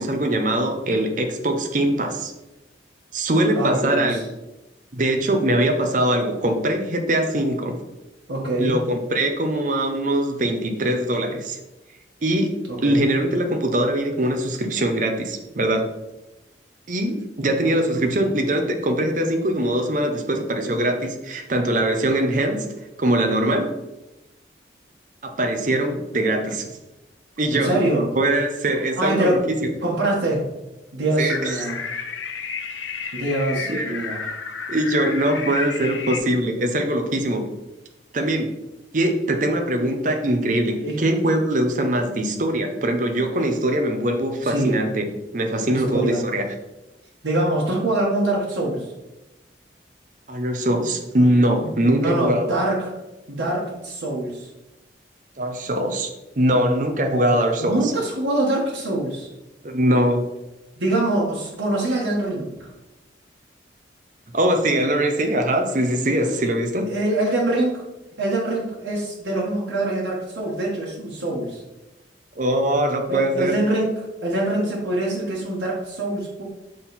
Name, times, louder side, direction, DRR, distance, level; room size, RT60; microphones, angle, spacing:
voice 1, 0.0-2.3 3.1-4.2 4.9-7.8 8.6-11.6 12.2-12.5 12.8-15.9 16.9-22.7 23.0-23.7 25.4-26.7 27.4-27.8 28.2-29.7 31.2-31.6 33.7-33.9 34.7-37.5 38.1-38.5 38.9-45.1 45.3-46.4 50.3-52.5 55.4-56.1 56.4-57.9 59.6-60.3 64.3-66.9 72.4-73.5, right 1 dB, 45° right, 4 dB, 0.7 m, -22 dB
voice 2, 3.5-4.2 8.3-8.7 12.8-13.1 17.9-18.0 27.5-28.1 29.0-29.4 29.8-30.4 30.9-31.8 33.1-34.2 40.8-41.0 44.4-44.8 45.7-46.2 47.2-48.9 52.0-52.9 53.3-54.5 57.6-59.3 60.8-62.7 66.9-67.8 68.2-71.6 73.1-76.4, right 1 dB, 90° right, -5 dB, 1.4 m, -24 dB
sound 1, 31.3-36.2, left 5 dB, 85° left, 0.7 m, -32 dB
6.4 x 3.9 x 4.1 m, 0.99 s
head